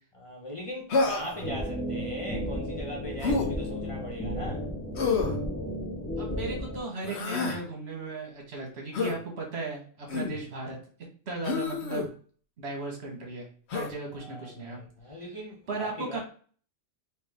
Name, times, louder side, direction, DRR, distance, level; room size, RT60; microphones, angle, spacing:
voice 1, 0.1-4.6 14.2-15.6 16.0-16.2, left 1 dB, 35° left, 0.7 m, -39 dB
Human voice, 0.9-1.4 3.2-3.5 5.0-5.4 7.0-7.6 8.9-9.2 10.1-10.4 11.4-12.1 13.7-13.9, left 4 dB, 70° left, 1.0 m, -28 dB
sound 1, 1.4-6.8, equal, 10° left, 0.9 m, -33 dB
voice 2, 6.2-10.8 11.3-12.1 12.6-13.5 13.7-14.8 15.7-16.2, right 3 dB, 65° right, 1.4 m, -36 dB
3.4 x 3.1 x 3.4 m
omnidirectional pair, 1.2 m